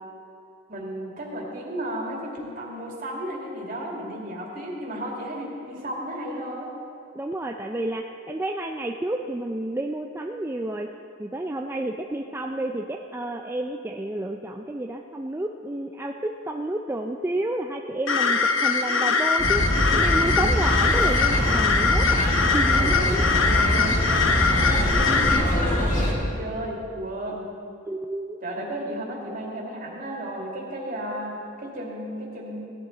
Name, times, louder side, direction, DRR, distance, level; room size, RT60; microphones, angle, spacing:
voice 1, 0.7-6.7 22.7-24.0 24.4-27.5 28.4-32.7, equal, 45° right, -2 dB, 2.4 m, -34 dB
voice 2, 7.1-10.9 11.2-23.0 27.3-27.4 27.9-28.4, right 1 dB, 10° right, 2 dB, 0.4 m, -30 dB
sound 1, 18.1-25.4, left 4 dB, 80° left, 0.9 m, -22 dB
sound 2, 19.4-26.1, equal, 40° left, 1.8 m, -24 dB
17.0 x 11.5 x 4.0 m, 2.6 s
head